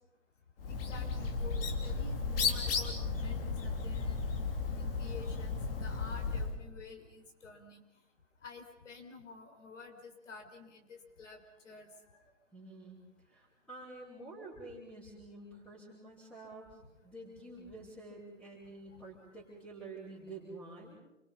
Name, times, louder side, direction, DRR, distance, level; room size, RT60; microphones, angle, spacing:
Bird, 0.6-6.6, left 4 dB, 50° left, 3.6 m, -34 dB
voice 1, 0.7-4.2 4.8-7.8 8.4-11.9 18.9-19.0, left 4 dB, 70° left, 4 dB, 5.8 m, -50 dB
voice 2, 12.5-13.0 13.3-16.7 17.0-21.0, right 2 dB, ahead, -9 dB, 5.5 m, -49 dB
29.0 x 24.0 x 5.7 m, 0.91 s
hypercardioid pair, 155°, 38 cm